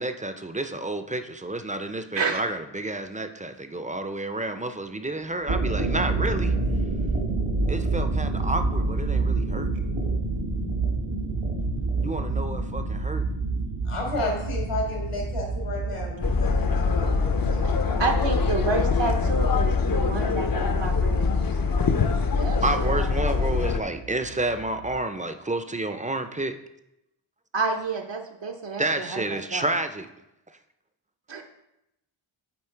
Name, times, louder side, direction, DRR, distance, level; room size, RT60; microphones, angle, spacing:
voice 1, 0.0-6.5 7.7-9.7 12.0-13.2 22.6-26.6 28.8-30.1, right 2 dB, 15° right, 9 dB, 0.5 m, -30 dB
sound 1, 5.3-25.0, right 3 dB, 75° right, 1.9 m, -29 dB
voice 2, 13.9-18.7 22.1-22.2, left 2 dB, 85° left, -1 dB, 1.9 m, -33 dB
sound 2, 16.2-23.8, left 5 dB, 45° left, 0.7 m, -24 dB
voice 3, 18.0-21.6 22.4-23.1 27.5-29.7 31.3-31.4, right 3 dB, 60° right, 3 dB, 0.8 m, -29 dB
8.5 x 3.7 x 4.5 m, 0.87 s
wide cardioid pair, 60°, 50 cm